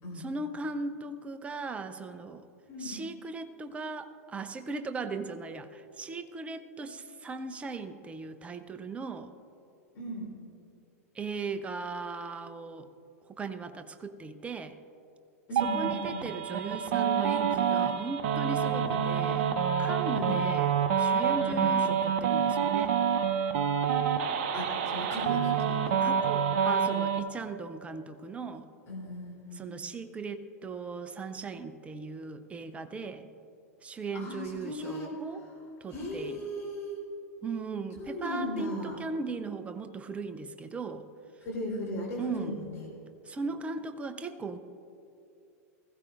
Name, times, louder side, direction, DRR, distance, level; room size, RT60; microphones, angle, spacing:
voice 1, 0.1-2.4 2.8-9.3 11.1-12.9 13.4-14.8 15.6-19.5 19.8-20.7 21.0-23.0 26.0-28.7 29.5-33.2 33.8-35.4 35.8-36.5 37.4-41.0 42.2-42.6 43.2-44.6, right 4 dB, 15° right, 9 dB, 0.6 m, -38 dB
voice 2, 9.9-10.3 15.5-16.3 18.7-18.9 20.1-20.4 21.5-21.7 24.5-26.0 28.9-29.7 34.1-35.1 35.9-37.0 38.0-39.0 41.4-42.9, left 1 dB, 30° left, -3 dB, 3.3 m, -37 dB
sound 1, 15.6-27.2, right 7 dB, 45° right, 0.8 m, -27 dB
20.0 x 16.0 x 2.5 m, 2.7 s
figure-of-eight pair, 95°, 8 cm